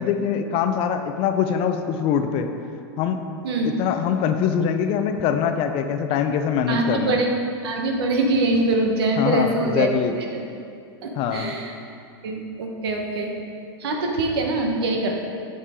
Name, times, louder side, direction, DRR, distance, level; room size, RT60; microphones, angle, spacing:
voice 1, 0.0-2.5 3.0-3.2 3.8-7.2 9.2-10.1 11.2-11.5, left 7 dB, 45° left, 7 dB, 0.6 m, -23 dB
voice 2, 6.7-7.3 7.6-9.9 11.0-11.7 12.2-13.3 13.8-15.2, right 2 dB, 75° right, 1 dB, 1.3 m, -23 dB
8.4 x 6.5 x 3.7 m, 2.5 s
hypercardioid pair, 115°, 13 cm